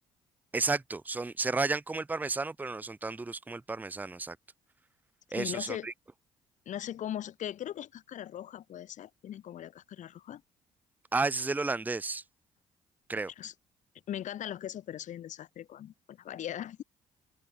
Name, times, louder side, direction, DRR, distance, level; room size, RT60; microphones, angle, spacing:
voice 1, 0.5-4.4 5.3-5.9 11.1-12.2 13.1-13.3, right 3 dB, 10° right, 0.5 m, -32 dB
voice 2, 5.4-5.9 6.7-10.4 13.4-13.5 14.1-16.8, left 11 dB, 45° left, 0.6 m, -39 dB
hypercardioid pair, 50°, 17 cm